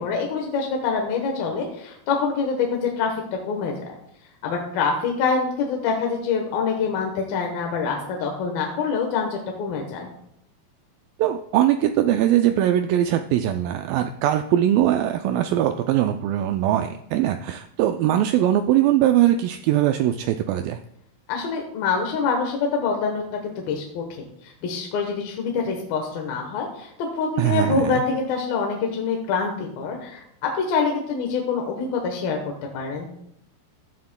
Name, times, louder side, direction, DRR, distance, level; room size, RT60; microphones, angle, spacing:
voice 1, 0.0-3.7 4.4-10.1 21.3-32.4 32.7-33.1, left 5 dB, 75° left, 1 dB, 2.8 m, -25 dB
voice 2, 11.2-20.8 27.4-28.0, right 12 dB, 85° right, 7 dB, 2.0 m, -21 dB
15.5 x 11.5 x 2.2 m, 0.74 s
omnidirectional pair, 4.5 m